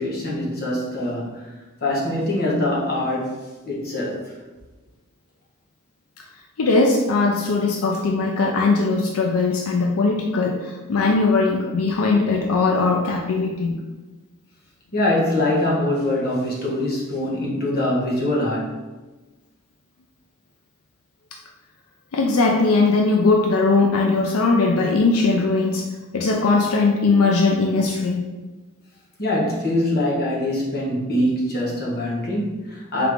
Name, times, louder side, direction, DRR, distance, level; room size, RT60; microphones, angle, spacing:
voice 1, 0.0-1.5 1.8-4.4 14.9-18.8 29.2-33.1, left 1 dB, 45° left, -4 dB, 1.1 m, -23 dB
voice 2, 6.6-13.8 22.1-25.8 26.1-28.3, left 3 dB, 85° left, 0 dB, 0.5 m, -19 dB
3.7 x 3.3 x 3.4 m, 1.2 s
head